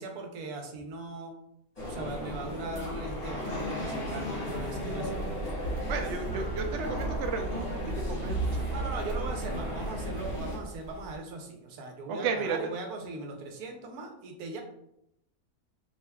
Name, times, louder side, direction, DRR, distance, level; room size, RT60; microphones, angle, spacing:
voice 1, 0.0-1.4 1.9-5.3 8.7-14.6, right 3 dB, 80° right, 3 dB, 1.2 m, -39 dB
sound 1, 1.8-10.6, right 1 dB, 25° left, 1.2 m, -34 dB
sound 2, 4.5-11.2, right 1 dB, 15° right, 1.1 m, -45 dB
voice 2, 5.9-7.7 8.1-8.8 12.1-12.6, right 5 dB, 65° right, 4 dB, 0.8 m, -33 dB
4.9 x 2.8 x 2.2 m, 0.77 s
omnidirectional pair, 1.6 m